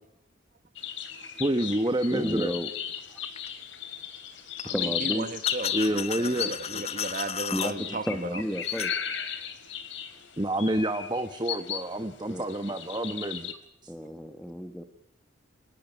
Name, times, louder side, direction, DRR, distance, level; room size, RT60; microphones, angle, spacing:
sound 1, 0.8-11.9 12.3-13.5, left 9 dB, 70° left, 3.8 m, -35 dB
voice 1, 1.4-2.5 5.7-6.8 10.4-13.5 13.8-13.9, right 1 dB, 20° right, 9 dB, 1.2 m, -28 dB
voice 2, 2.1-2.7 4.6-5.3 7.5-8.9 12.3-12.7 13.9-14.8, equal, ahead, 9 dB, 1.9 m, -32 dB
sound 2, 3.4-3.5 4.6-4.7 5.4-7.7 8.6-8.9, left 7 dB, 30° left, 1.3 m, -35 dB
voice 3, 4.6-8.4, right 2 dB, 45° right, 12 dB, 1.6 m, -36 dB
24.5 x 20.0 x 9.7 m, 0.82 s
head